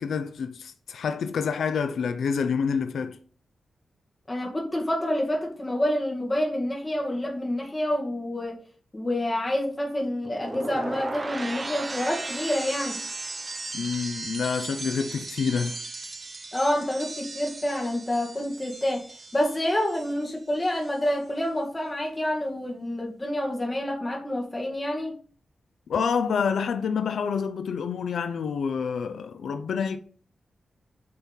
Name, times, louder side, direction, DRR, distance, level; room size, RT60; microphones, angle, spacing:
voice 1, 0.0-3.2 13.7-15.8 25.9-30.0, left 6 dB, 90° left, 0.7 m, -27 dB
voice 2, 4.3-8.6 8.9-13.0 16.5-19.1 19.3-25.1, left 1 dB, 15° left, 2.0 m, -28 dB
sound 1, 10.2-20.4 20.6-21.1, right 3 dB, 25° right, 0.7 m, -37 dB
8.5 x 4.5 x 5.3 m
wide cardioid pair, 155°, 0 cm